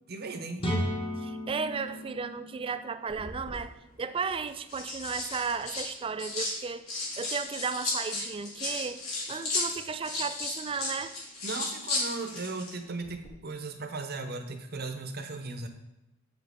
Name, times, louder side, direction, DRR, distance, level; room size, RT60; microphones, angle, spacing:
voice 1, 0.1-0.6 11.4-15.7, right 3 dB, 50° right, 7 dB, 0.8 m, -37 dB
sound 1, 0.6-4.4, equal, 25° left, 1.2 m, -35 dB
voice 2, 1.2-3.7 4.0-11.1, right 5 dB, 25° right, 11 dB, 0.3 m, -34 dB
sound 2, 3.1-3.6 4.5-6.6 6.9-12.7 13.0-13.3, left 2 dB, 75° left, 2.2 m, -34 dB
7.5 x 6.2 x 3.5 m, 0.90 s
head